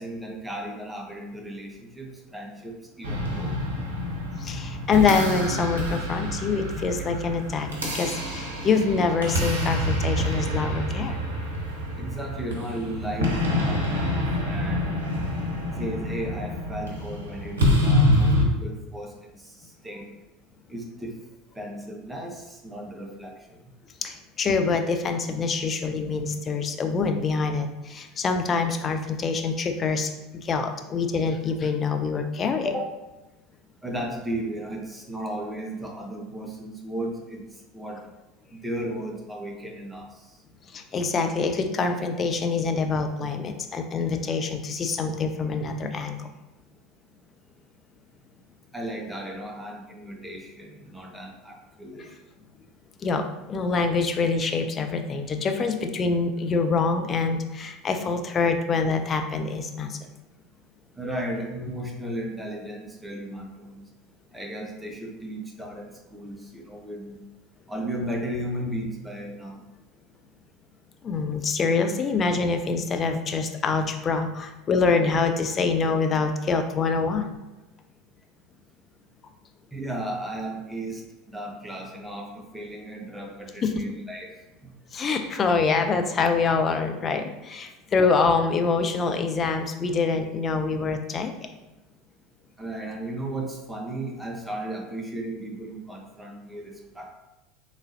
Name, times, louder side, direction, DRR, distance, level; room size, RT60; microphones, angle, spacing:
voice 1, 0.0-3.6 12.0-15.0 15.8-20.1 20.7-21.2 21.5-23.6 32.6-32.8 33.8-38.0 38.5-40.4 48.7-52.1 60.9-63.8 64.3-67.2 67.7-69.7 79.7-84.7 92.6-97.1, right 1 dB, 5° right, 0 dB, 0.7 m, -35 dB
sound 1, 3.0-18.5, left 1 dB, 80° right, 0.7 m, -27 dB
voice 2, 4.4-11.2 24.0-32.7 40.7-46.3 52.0-52.1 53.0-60.0 71.0-77.4 83.6-83.8 84.9-91.5, left 4 dB, 30° left, 6 dB, 0.4 m, -25 dB
3.8 x 3.0 x 2.7 m, 1.1 s
figure-of-eight pair, 70°, 0 cm